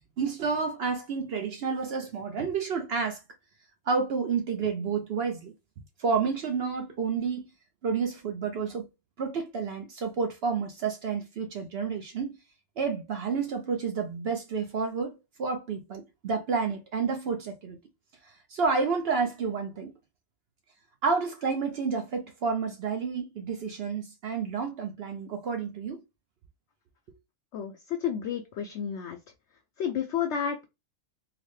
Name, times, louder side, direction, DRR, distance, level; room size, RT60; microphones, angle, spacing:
voice 1, 0.2-3.2 3.9-5.5 6.0-7.5 7.8-8.9 9.2-12.4 12.8-17.8 18.5-19.9 21.0-26.0, right 5 dB, 60° right, 0.7 m, -30 dB
voice 2, 27.5-29.2 29.8-30.6, left 8 dB, 65° left, 0.7 m, -31 dB
3.9 x 2.1 x 3.1 m
omnidirectional pair, 1.5 m